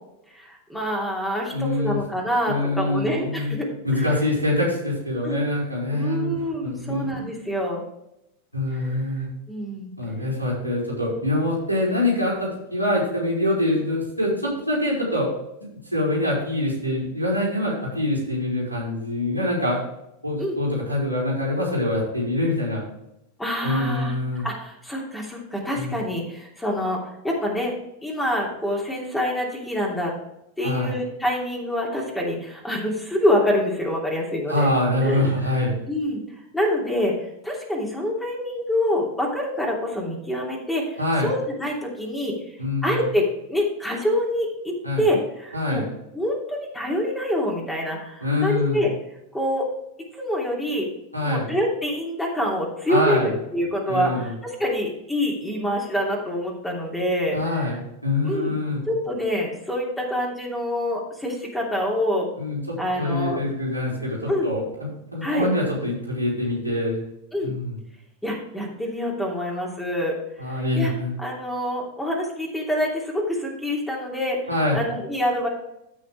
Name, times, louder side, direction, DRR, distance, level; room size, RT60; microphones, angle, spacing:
voice 1, 0.3-4.1 5.2-5.4 5.9-7.8 8.7-9.0 9.5-9.9 13.6-13.8 20.4-20.6 23.4-24.2 24.4-27.7 28.0-30.1 30.6-34.7 35.0-35.3 35.9-36.2 36.5-37.1 37.4-42.6 42.8-45.8 46.1-48.9 49.3-49.7 50.2-50.9 51.2-57.7 58.2-58.6 58.9-62.3 62.8-63.4 64.3-64.5 65.2-65.5 67.3-67.5 68.2-70.9 71.2-74.4 74.7-75.5, left 1 dB, 5° left, -1 dB, 2.9 m, -26 dB
voice 2, 1.5-2.0 2.5-3.5 3.8-7.2 8.5-9.3 10.0-15.3 15.6-19.9 20.2-22.8 23.6-24.5 25.7-25.9 30.6-30.9 34.5-35.8 41.0-41.3 42.6-43.0 44.8-45.0 45.5-45.9 48.2-48.8 51.1-51.5 52.9-53.3 53.9-54.3 57.3-58.8 62.4-67.0 67.4-67.8 70.4-71.1 74.5-74.8, left 1 dB, 90° right, -5 dB, 4.2 m, -25 dB
15.0 x 6.1 x 3.3 m, 0.84 s
figure-of-eight pair, 90°, 0 cm